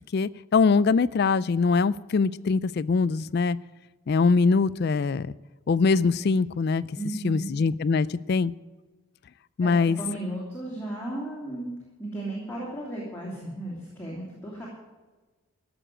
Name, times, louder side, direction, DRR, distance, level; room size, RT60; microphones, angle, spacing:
voice 1, 0.1-3.6 4.1-5.3 5.7-6.8 7.2-8.5 9.6-10.0, left 4 dB, 50° left, 17 dB, 0.3 m, -23 dB
voice 2, 6.9-7.5 9.6-14.7, right 1 dB, 10° left, -6 dB, 2.9 m, -35 dB
14.0 x 7.0 x 10.0 m, 1.2 s
head